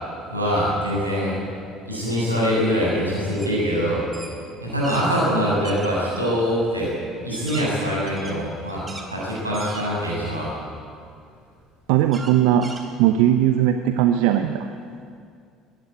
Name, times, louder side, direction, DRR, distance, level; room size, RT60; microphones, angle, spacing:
voice 1, 0.3-1.4 1.9-4.0 4.6-6.9 7.2-10.5, equal, 90° right, -5 dB, 7.9 m, -23 dB
sound 1, 3.4-3.6 3.9-5.1 5.6-5.9 6.6-6.7 7.1-9.1 9.5-10.3 10.8-10.9 12.1-13.4, right 3 dB, 25° right, 3.6 m, -39 dB
voice 2, 11.9-12.7 13.0-14.7, right 11 dB, 60° right, 8 dB, 0.9 m, -18 dB
21.0 x 17.5 x 8.6 m, 2.3 s
figure-of-eight pair, 60°, 0 cm